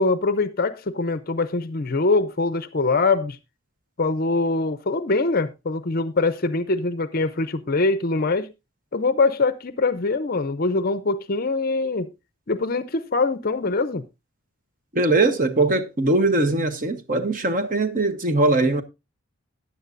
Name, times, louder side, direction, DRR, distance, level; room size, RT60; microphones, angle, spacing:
voice 1, 0.0-3.4 4.0-8.5 8.9-12.1 12.5-14.0, left 3 dB, 45° left, 0.5 m, -23 dB
voice 2, 14.9-18.8, right 2 dB, 40° right, 1.0 m, -21 dB
15.0 x 9.7 x 2.5 m
head